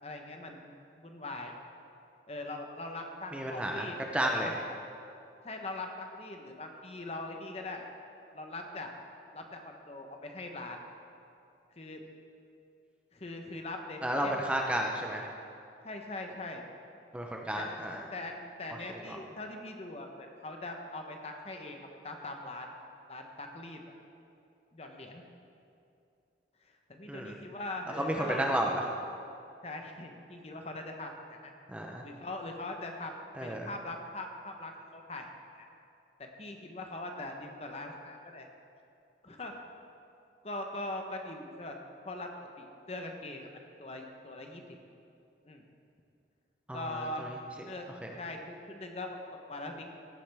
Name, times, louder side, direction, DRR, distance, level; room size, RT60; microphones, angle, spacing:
voice 1, 0.0-1.5 2.3-4.0 4.4-4.5 5.4-7.9 8.3-8.9 9.3-10.8 11.8-12.0 13.1-14.5 15.8-16.6 17.5-17.8 18.1-21.8 22.0-22.7 23.1-23.8 24.7-25.2 26.6-28.6 29.6-31.5 32.0-35.7 36.2-38.5 39.2-39.6 40.4-41.8 42.0-44.6 45.4-45.6 46.7-47.3 47.6-47.9 48.2-49.2 49.5-49.8, left 2 dB, 35° left, 3 dB, 0.8 m, -41 dB
voice 2, 3.3-3.9 4.1-4.5 14.0-15.3 17.1-18.0 19.1-19.2 27.1-27.3 28.0-28.8 31.7-32.0 33.4-33.7 46.7-46.8 48.0-48.1, right 1 dB, 5° right, 0 dB, 0.6 m, -32 dB
16.5 x 8.4 x 3.5 m, 2.6 s
head